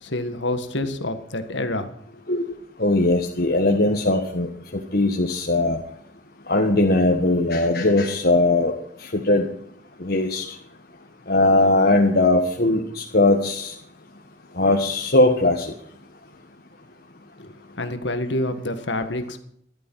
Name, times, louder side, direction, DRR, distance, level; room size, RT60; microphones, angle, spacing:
voice 1, 0.0-2.2 17.4-19.4, left 1 dB, 70° left, 8 dB, 1.8 m, -28 dB
voice 2, 2.8-4.5 4.9-5.8 6.5-8.7 9.1-9.5 10.0-10.4 11.3-13.7 14.6-15.6, left 2 dB, 55° left, 1 dB, 1.5 m, -19 dB
14.5 x 12.0 x 5.7 m, 0.66 s
head